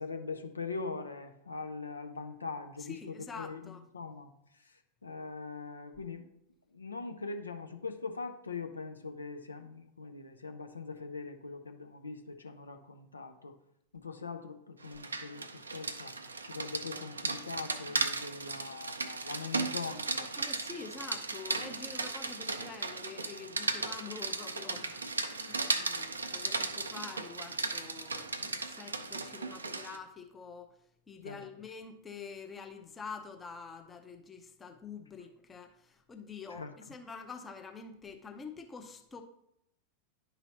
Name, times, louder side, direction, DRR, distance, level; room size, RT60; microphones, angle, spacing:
voice 1, 0.0-6.2 6.7-13.5 13.9-16.2 16.5-20.3 31.2-31.4 36.5-36.7, left 4 dB, 75° left, 6 dB, 0.5 m, -42 dB
voice 2, 2.8-3.8 19.9-30.8 31.1-39.2, left 5 dB, 15° left, 5 dB, 0.6 m, -47 dB
Rain, 14.8-30.0, right 3 dB, 75° right, 0.4 m, -36 dB
10.5 x 4.0 x 2.8 m, 0.76 s
figure-of-eight pair, 90°, 0 cm